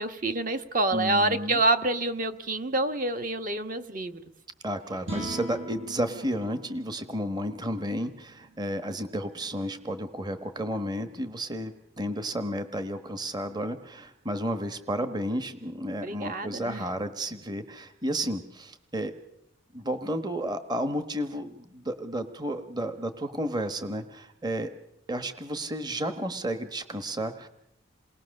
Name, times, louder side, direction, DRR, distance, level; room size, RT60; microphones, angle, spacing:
voice 1, 0.0-4.2 16.0-16.8, right 2 dB, 40° right, 8 dB, 1.2 m, -27 dB
voice 2, 0.9-1.6 4.6-19.1 19.7-24.7 25.1-27.5, right 1 dB, 20° right, 9 dB, 1.1 m, -32 dB
sound 1, 5.0-11.4, right 2 dB, 80° right, 7.9 m, -43 dB
28.0 x 20.0 x 6.5 m, 0.81 s
head